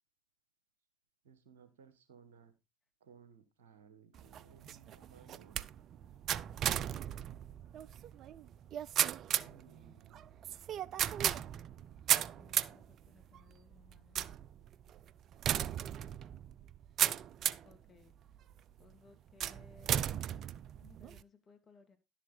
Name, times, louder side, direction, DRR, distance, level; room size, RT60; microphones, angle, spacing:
voice 1, 1.2-2.5 3.0-5.6 9.4-10.4, right 7 dB, 80° right, 1.6 m, -60 dB
sound 1, 4.1-17.8 18.3-18.8 19.4-21.2, right 10 dB, 50° right, 0.5 m, -36 dB
voice 2, 12.3-14.2 17.6-18.1 18.8-20.0 20.8-22.0, left 4 dB, 35° left, 2.6 m, -62 dB
11.5 x 6.9 x 4.0 m
hypercardioid pair, 70°, 0 cm